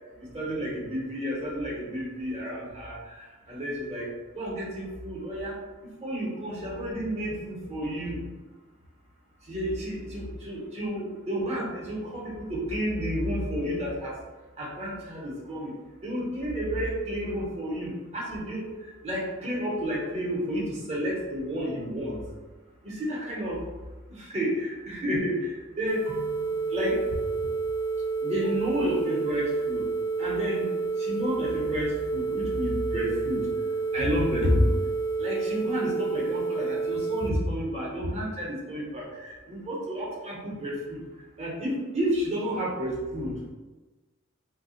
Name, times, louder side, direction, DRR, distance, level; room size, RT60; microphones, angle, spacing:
voice 1, 0.1-5.6 6.0-8.2 9.5-14.2 14.6-15.8 16.0-22.2 22.8-23.6 24.1-26.5 26.7-27.0 28.2-29.9 30.2-30.7 31.0-33.5 33.9-34.7 35.2-41.0 41.4-43.4, equal, 30° right, -4 dB, 0.9 m, -31 dB
sound 1, 25.9-37.3, right 4 dB, 55° left, 0.3 m, -29 dB
2.8 x 2.2 x 4.1 m, 1.2 s
head